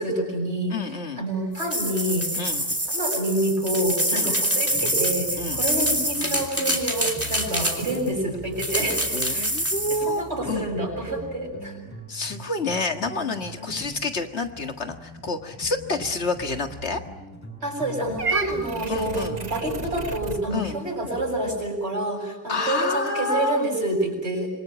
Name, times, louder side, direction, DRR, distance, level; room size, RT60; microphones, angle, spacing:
voice 1, 0.0-0.7 1.2-2.3 2.9-9.5 9.9-11.8 13.6-13.7 17.6-24.5, right 1 dB, 65° right, 2 dB, 7.9 m, -27 dB
voice 2, 0.7-1.2 2.3-2.6 4.1-4.4 5.4-5.6 9.1-10.7 12.1-17.0 18.9-19.4 20.5-20.8 22.5-23.6, left 3 dB, 65° left, 6 dB, 2.1 m, -28 dB
sound 1, 1.6-8.1 8.6-10.1, right 1 dB, 10° right, 3.2 m, -26 dB
sound 2, 4.7-21.6, equal, 15° left, 4.7 m, -42 dB
Purr / Meow, 18.2-20.4, right 4 dB, 35° right, 1.3 m, -31 dB
26.5 x 24.5 x 8.9 m, 1.0 s
omnidirectional pair, 1.2 m